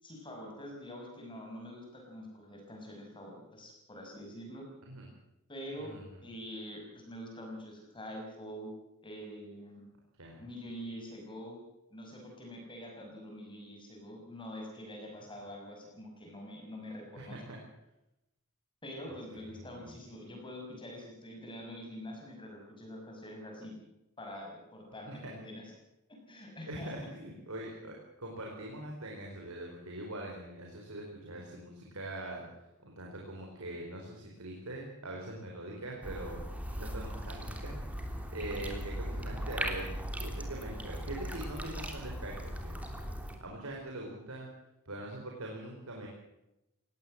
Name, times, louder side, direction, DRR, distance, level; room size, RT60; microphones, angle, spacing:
voice 1, 0.0-4.6 5.5-6.0 6.2-8.7 9.0-9.9 10.4-11.6 11.9-17.4 18.8-23.8 24.2-25.7 26.1-26.9, equal, 25° left, 1 dB, 5.9 m, -45 dB
voice 2, 17.1-17.6 19.1-19.9 25.1-25.3 26.7-36.4 36.7-42.9 43.4-44.5 44.8-46.1, right 1 dB, 80° right, 0 dB, 4.5 m, -43 dB
sound 1, 36.0-43.4, equal, 5° right, 3.3 m, -38 dB
20.0 x 17.5 x 7.7 m, 0.89 s
head